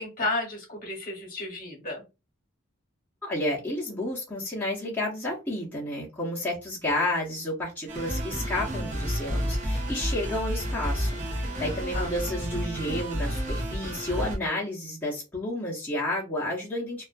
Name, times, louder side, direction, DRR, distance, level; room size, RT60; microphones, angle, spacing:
voice 1, 0.0-2.0 11.5-12.1, left 2 dB, 45° left, 0 dB, 1.0 m, -33 dB
voice 2, 3.2-17.0, left 1 dB, 10° left, -8 dB, 0.7 m, -31 dB
sound 1, 7.9-14.4, equal, 35° right, 0.7 m, -30 dB
2.4 x 2.2 x 2.4 m, 0.27 s
head